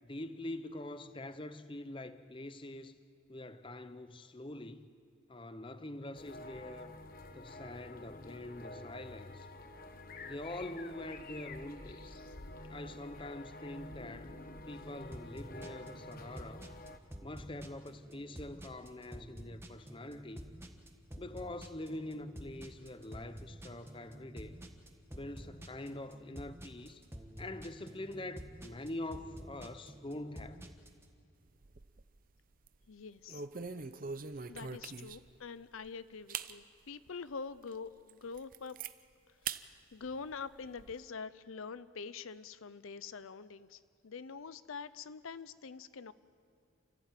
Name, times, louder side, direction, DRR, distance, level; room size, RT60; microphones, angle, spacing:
voice 1, 0.0-3.0 3.3-4.9 5.3-7.0 7.3-9.5 10.2-12.2 12.7-14.4 14.7-16.7 17.2-20.4 21.2-24.6 25.1-27.0 27.4-30.6, left 1 dB, 25° left, 0.7 m, -44 dB
sound 1, 6.1-17.0, left 2 dB, 40° left, 1.1 m, -49 dB
sound 2, 15.1-31.0, equal, 10° right, 1.3 m, -49 dB
sound 3, 31.5-32.2 32.5-32.8 33.3-35.4 35.8-35.9 36.3-36.5 37.1-37.2 37.7-37.8 38.1-38.9 39.4-39.6 40.0-40.9, right 6 dB, 40° right, 0.6 m, -42 dB
voice 2, 32.9-33.5 34.5-38.8 39.3-46.1, left 5 dB, 70° left, 0.6 m, -45 dB
29.0 x 15.0 x 9.1 m
head